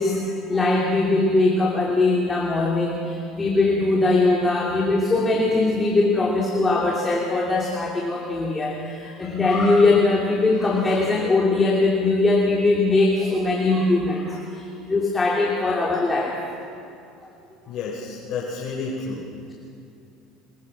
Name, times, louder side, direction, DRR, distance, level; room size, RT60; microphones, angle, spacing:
voice 1, 0.0-16.4, left 2 dB, 20° left, -2 dB, 2.9 m, -21 dB
voice 2, 17.7-19.3, left 4 dB, 50° left, -4 dB, 4.4 m, -30 dB
24.0 x 21.0 x 6.4 m, 2.6 s
supercardioid pair, 115°, 0 cm